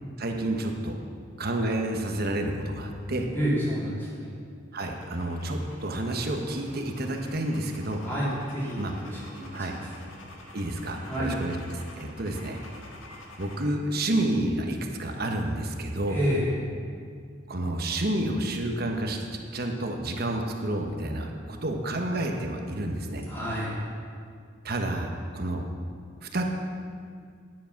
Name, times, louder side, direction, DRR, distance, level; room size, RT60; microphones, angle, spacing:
voice 1, 0.2-1.0 1.4-3.3 4.7-8.0 8.8-8.9 9.5-9.7 10.5-12.6 13.4-16.2 17.5-19.3 19.5-23.2 24.6-25.6 26.2-26.4, right 1 dB, 50° right, 3 dB, 1.2 m, -30 dB
voice 2, 3.3-4.3 8.0-10.1 11.0-11.3 16.1-16.5 23.3-23.8, equal, 10° left, -8 dB, 3.5 m, -30 dB
sound 1, 4.8-13.6, left 1 dB, 85° left, 1.9 m, -48 dB
9.9 x 9.7 x 5.9 m, 2.2 s
head